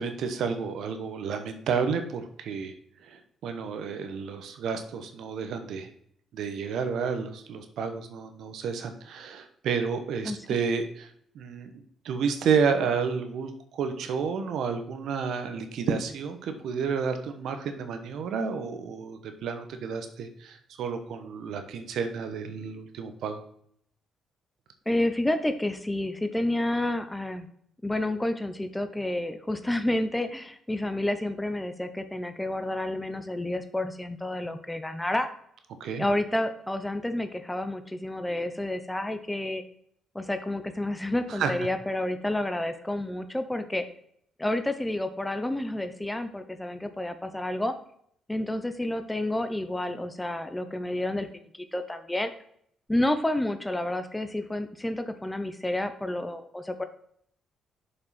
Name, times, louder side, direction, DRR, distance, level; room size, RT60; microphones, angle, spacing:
voice 1, 0.0-2.7 3.0-5.9 6.3-11.7 12.0-23.4 35.8-36.0 41.3-41.5, right 6 dB, 75° right, 8 dB, 1.0 m, -31 dB
voice 2, 24.9-27.5 27.8-35.3 36.0-39.6 40.1-43.8 44.4-47.7 48.3-52.3 52.9-56.8, left 1 dB, 10° left, 9 dB, 0.7 m, -30 dB
7.0 x 5.4 x 4.2 m, 0.66 s
cardioid pair, 90°, 0 cm